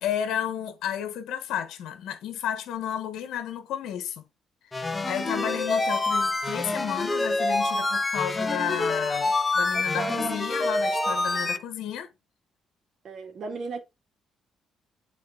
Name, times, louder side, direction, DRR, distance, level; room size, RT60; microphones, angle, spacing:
voice 1, 0.0-4.2 5.0-12.1, left 9 dB, 85° left, 1.3 m, -32 dB
sound 1, 4.7-11.6, left 2 dB, 20° left, 1.2 m, -26 dB
voice 2, 5.3-5.6 9.7-10.4 10.9-11.6 13.0-13.8, right 4 dB, 60° right, 2.3 m, -37 dB
8.7 x 4.2 x 4.2 m
cardioid pair, 90°, 0 cm